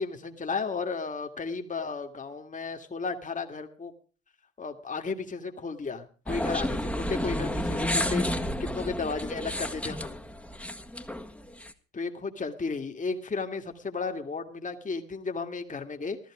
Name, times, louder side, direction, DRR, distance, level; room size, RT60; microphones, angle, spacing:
voice 1, 0.0-3.9 4.6-10.2 11.9-16.2, left 4 dB, 25° left, 5 dB, 1.9 m, -34 dB
sound 1, 6.3-11.7, left 1 dB, 5° left, 1.6 m, -31 dB
15.5 x 13.5 x 4.9 m, 0.39 s
hypercardioid pair, 55°, 32 cm